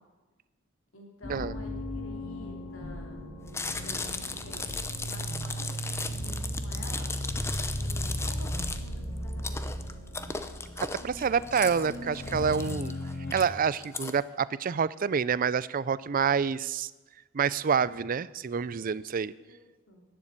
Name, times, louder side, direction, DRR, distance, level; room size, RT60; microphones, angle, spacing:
voice 1, 0.9-3.2 3.7-4.7 5.0-7.1 7.4-9.9 18.8-20.0, equal, 85° left, 1 dB, 3.3 m, -49 dB
sound 1, 1.2-13.5, equal, 50° left, 4.2 m, -36 dB
Chewing mastication, 3.5-14.1, left 3 dB, 15° left, 0.7 m, -37 dB
voice 2, 10.8-12.9 13.3-16.9 17.3-19.3, right 6 dB, 45° right, 18 dB, 0.4 m, -27 dB
11.5 x 10.0 x 8.3 m, 1.2 s
head